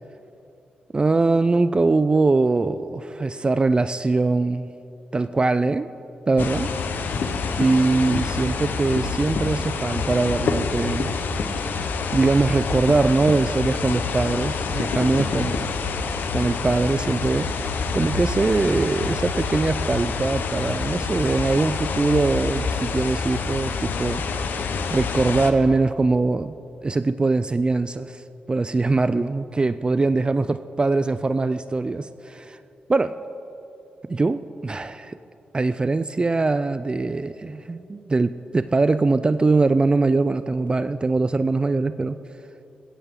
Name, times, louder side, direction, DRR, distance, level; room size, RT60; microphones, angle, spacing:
voice 1, 0.9-4.7 5.1-5.9 6.3-6.7 7.6-11.1 12.1-15.7 16.3-24.2 24.9-26.5 26.8-32.6 32.9-33.2 34.1-35.2 35.5-42.2, right 3 dB, 30° right, 12 dB, 0.4 m, -22 dB
sound 1, 6.4-25.5, left 4 dB, 75° left, 1.0 m, -27 dB
16.5 x 14.5 x 3.8 m, 2.8 s
cardioid pair, 70°, 3 cm